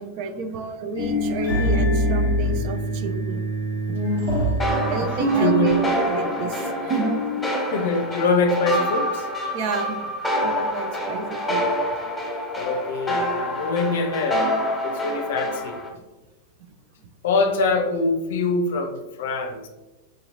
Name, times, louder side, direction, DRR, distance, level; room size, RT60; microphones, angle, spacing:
voice 1, 0.0-3.4 4.8-7.2 9.5-10.1 10.4-11.6, right 4 dB, 45° right, 7 dB, 0.5 m, -30 dB
sound 1, 0.9-7.5, right 1 dB, 85° right, 1.2 m, -24 dB
sound 2, 4.6-15.9, equal, 10° left, 1.2 m, -27 dB
voice 2, 5.4-5.8 7.7-9.3 12.6-14.4 14.8-15.8 17.2-19.7, left 3 dB, 55° left, 6 dB, 0.6 m, -23 dB
5.0 x 2.8 x 2.7 m, 1.1 s
figure-of-eight pair, 90°, 0 cm